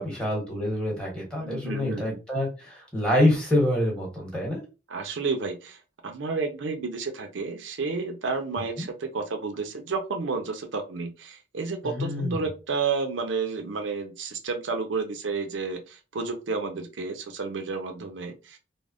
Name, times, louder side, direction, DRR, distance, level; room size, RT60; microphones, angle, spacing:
voice 1, 0.0-4.6 11.8-12.4, left 1 dB, 5° left, -3 dB, 1.0 m, -26 dB
voice 2, 1.4-2.2 4.9-5.8 6.0-18.6, right 4 dB, 75° right, 6 dB, 0.5 m, -31 dB
3.3 x 2.0 x 2.5 m, 0.30 s
head